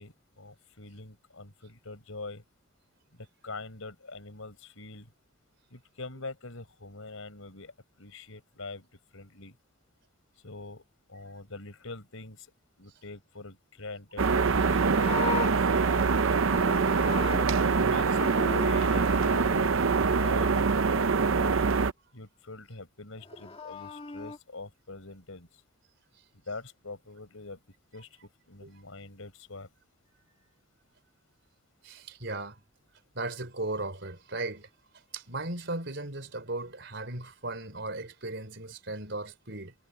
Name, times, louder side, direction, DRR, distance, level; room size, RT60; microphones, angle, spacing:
voice 1, 0.0-2.4 3.1-5.1 5.7-7.7 8.0-8.9 9.1-9.6 10.4-10.8 11.1-12.5 12.8-16.4 17.3-21.6 22.1-25.5 26.5-27.6 27.9-28.1 28.5-29.7, left 3 dB, 85° left, 4.7 m, -44 dB
sound 1, 14.2-21.9, right 4 dB, 75° right, 0.7 m, -24 dB
Livestock farm animals working animals, 14.4-17.8 18.1-19.4 23.2-24.4, left 3 dB, 25° left, 2.0 m, -37 dB
voice 2, 31.8-32.6 33.1-34.7 35.1-39.7, right 2 dB, 60° right, 4.0 m, -36 dB
head